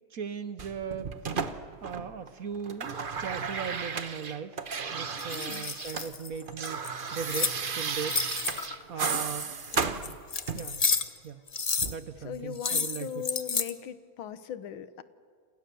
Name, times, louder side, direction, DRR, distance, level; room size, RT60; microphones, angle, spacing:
voice 1, 0.1-1.1 1.8-4.6 4.9-6.9 7.1-8.2 8.9-9.5 10.5-10.9 11.2-11.4 11.9-13.1, right 7 dB, 55° right, 12 dB, 1.1 m, -38 dB
sound 1, 0.6-2.3 2.5-6.1 6.3-10.8 11.8-12.0, right 5 dB, 35° right, 0.9 m, -34 dB
sound 2, 5.2-7.6 8.0-8.8 9.4-11.2 11.5-11.9 12.6-13.7, left 5 dB, 40° left, 0.5 m, -31 dB
voice 2, 5.3-5.7 8.9-9.3 9.7-10.0 12.2-15.0, left 9 dB, 85° left, 14 dB, 1.8 m, -39 dB
29.5 x 27.5 x 6.9 m, 2.1 s
omnidirectional pair, 2.1 m